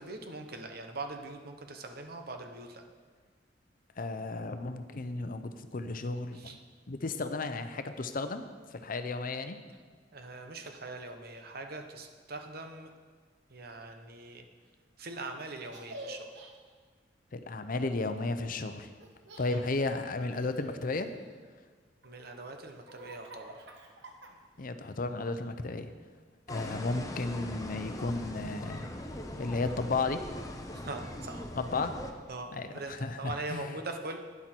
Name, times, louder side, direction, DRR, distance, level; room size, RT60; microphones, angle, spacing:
voice 1, 0.0-2.8 6.3-6.6 10.1-12.9 13.5-14.4 15.0-16.3 22.0-23.6 30.7-31.5 32.3-34.2, right 2 dB, 60° right, 5 dB, 1.1 m, -42 dB
voice 2, 4.0-6.6 6.9-8.4 8.7-9.6 17.3-18.9 19.4-21.1 24.6-25.9 26.5-28.9 29.4-30.2 31.6-31.9 32.5-33.7, left 3 dB, 50° left, 9 dB, 0.7 m, -34 dB
Laughter, 15.7-16.5 19.0-19.6 20.2-21.5 22.0-24.6, right 1 dB, 75° right, 1.4 m, -49 dB
sound 1, 26.5-32.1, left 1 dB, 20° left, 0.9 m, -41 dB
11.5 x 9.8 x 4.5 m, 1.5 s
head